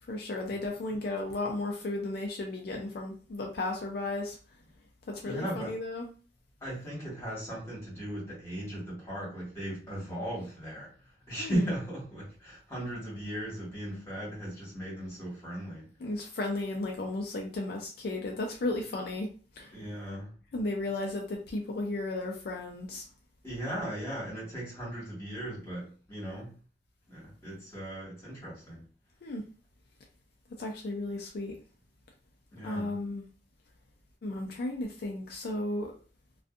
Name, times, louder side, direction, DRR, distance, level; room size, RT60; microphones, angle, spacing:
voice 1, 0.1-4.4 5.1-6.1 11.4-11.7 16.0-19.3 19.5-19.8 20.5-23.0 29.2-29.4 30.6-31.5 32.6-33.2 34.2-35.9, left 2 dB, 60° left, 1 dB, 0.4 m, -34 dB
voice 2, 5.2-5.7 6.6-10.9 11.3-15.8 19.7-20.3 23.4-26.5 27.1-28.8 32.5-32.9, right 1 dB, 15° left, -6 dB, 1.4 m, -37 dB
2.5 x 2.4 x 2.4 m, 0.39 s
head